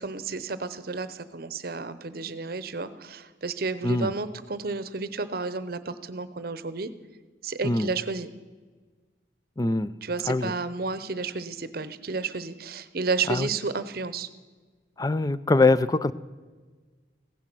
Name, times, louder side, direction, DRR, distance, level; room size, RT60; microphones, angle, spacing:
voice 1, 0.0-6.9 7.4-8.3 10.0-14.3, right 4 dB, 55° right, 14 dB, 0.8 m, -31 dB
voice 2, 9.6-9.9 10.3-10.5 13.3-13.5 15.0-16.1, left 2 dB, 20° left, 15 dB, 0.4 m, -23 dB
16.0 x 10.5 x 6.1 m, 1.4 s
head